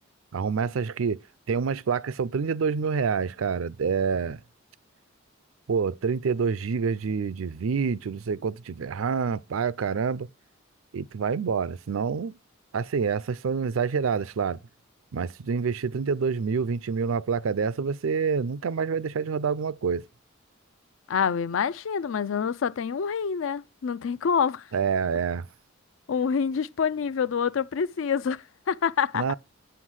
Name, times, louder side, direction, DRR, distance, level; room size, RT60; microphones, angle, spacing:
voice 1, 0.3-1.2 1.5-4.4 5.7-10.3 10.9-12.3 12.7-14.6 15.1-20.0 24.7-25.5 29.1-29.3, right 5 dB, 85° right, 0.5 m, -27 dB
voice 2, 21.1-24.7 26.1-29.3, left 6 dB, 70° left, 0.4 m, -27 dB
8.0 x 5.8 x 6.3 m
head